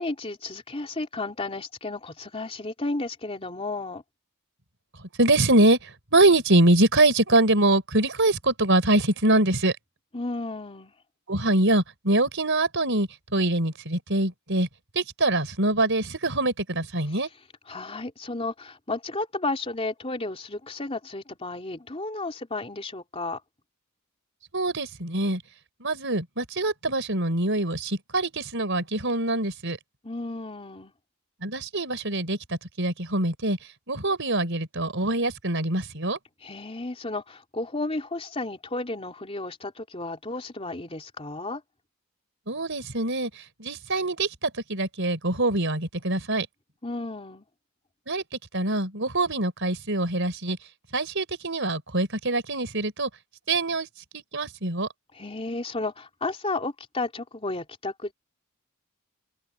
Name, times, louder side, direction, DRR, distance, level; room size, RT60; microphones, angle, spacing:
voice 1, 0.0-4.0 10.1-10.9 17.7-23.4 30.0-30.9 36.4-41.6 46.8-47.4 55.1-58.1, left 2 dB, 25° left, 3.2 m, -33 dB
voice 2, 5.2-9.7 11.3-14.7 14.9-17.3 24.5-25.4 25.8-29.8 31.4-33.6 33.9-36.2 42.5-43.3 43.6-46.5 48.1-48.2 48.5-50.6 50.9-53.1 53.5-53.9 54.1-54.9, right 2 dB, 55° right, 5.0 m, -24 dB
open air
head